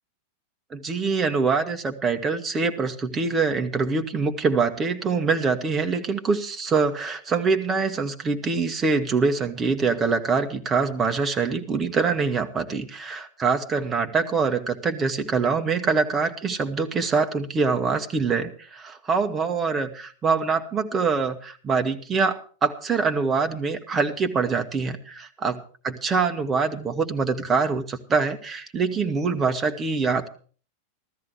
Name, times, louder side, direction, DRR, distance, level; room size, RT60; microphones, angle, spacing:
voice 1, 0.7-30.3, right 4 dB, 20° right, 5 dB, 1.6 m, -24 dB
15.5 x 13.5 x 4.8 m, 0.41 s
figure-of-eight pair, 90°, 0 cm